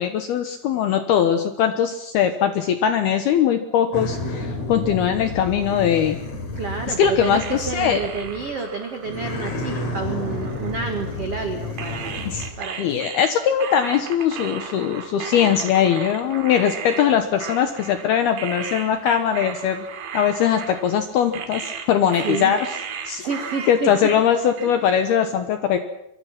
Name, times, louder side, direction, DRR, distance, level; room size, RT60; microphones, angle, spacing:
voice 1, 0.0-6.2 6.9-8.0 12.3-12.5 12.8-19.9 20.1-22.7 23.1-23.3 23.7-25.8, left 8 dB, 75° left, 8 dB, 2.3 m, -21 dB
sound 1, 3.9-8.6 9.0-12.5, left 2 dB, 35° left, 3.7 m, -31 dB
voice 2, 6.5-12.3 12.6-12.9 22.2-22.5 23.2-24.1, right 4 dB, 90° right, 5 dB, 1.3 m, -29 dB
sound 2, 7.4-11.4 11.8-25.1, right 7 dB, 65° right, 4.2 m, -36 dB
24.5 x 23.5 x 6.0 m, 0.84 s
omnidirectional pair, 5.9 m